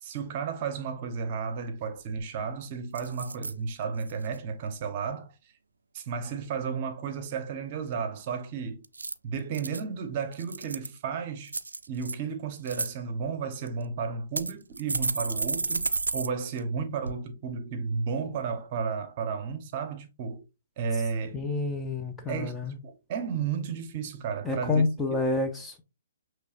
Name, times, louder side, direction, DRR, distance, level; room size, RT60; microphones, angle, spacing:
voice 1, 0.0-5.3 5.9-8.8 9.2-11.5 11.9-20.4 20.8-21.4 22.3-24.8, right 6 dB, 40° right, 0.8 m, -33 dB
sound 1, 1.8-1.9 2.2-2.5 2.9-3.5 4.0-4.4 8.8-9.8 10.3-11.0 11.5-12.1 12.5-12.9 13.7-13.8 14.4-16.3 16.6-16.7 17.0-17.1, right 3 dB, 90° right, 0.3 m, -32 dB
voice 2, 21.3-22.8 24.4-25.8, left 3 dB, 10° left, 0.6 m, -28 dB
6.2 x 3.2 x 2.5 m
hypercardioid pair, 135°, 0 cm